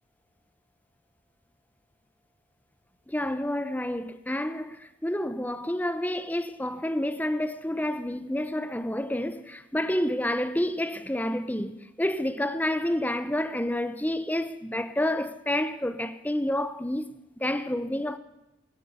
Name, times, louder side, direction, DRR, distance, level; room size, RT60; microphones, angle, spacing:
voice 1, 3.1-18.2, left 1 dB, 10° left, 0.7 m, -29 dB
17.5 x 10.0 x 8.3 m
head